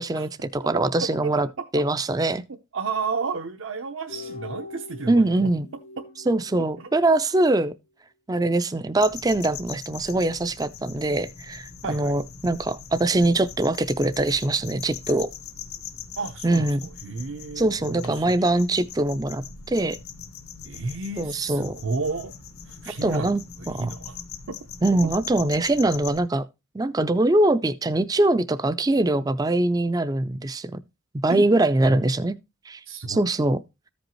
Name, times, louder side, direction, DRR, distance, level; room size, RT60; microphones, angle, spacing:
voice 1, 0.0-1.5 1.7-2.4 5.1-5.7 6.3-7.7 8.3-15.3 16.4-16.8 17.6-20.0 21.2-21.8 23.0-23.4 23.7-23.9 24.8-26.4 26.7-30.8 31.2-32.3 32.7-32.8 33.1-33.6, right 2 dB, 15° right, 0.4 m, -23 dB
voice 2, 2.7-5.5 6.8-6.9 11.8-12.2 16.2-18.5 20.6-22.3 22.6-23.3 23.6-24.2 24.5-24.6 31.3-31.5 31.8-32.0 32.9-33.2, right 4 dB, 65° right, 0.8 m, -32 dB
sound 1, 4.1-7.3, left 3 dB, 35° left, 0.6 m, -42 dB
sound 2, 9.0-26.2, left 7 dB, 90° left, 1.3 m, -41 dB
14.0 x 5.2 x 3.0 m
head